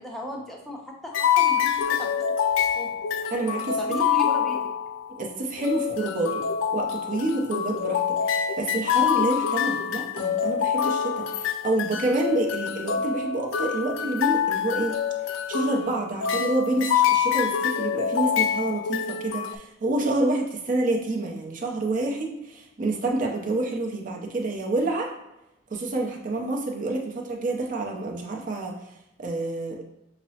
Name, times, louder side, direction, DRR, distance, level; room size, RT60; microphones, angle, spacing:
voice 1, 0.0-2.1 2.8-2.9 3.8-4.6, equal, ahead, -1 dB, 0.6 m, -36 dB
sound 1, 1.1-5.2 5.6-19.6, left 8 dB, 85° left, 0.3 m, -26 dB
voice 2, 3.3-4.0 5.2-6.4 6.7-15.0 15.5-25.1 25.7-28.8 29.2-29.8, right 2 dB, 45° right, 1 dB, 0.6 m, -28 dB
5.7 x 2.0 x 2.8 m, 0.89 s
head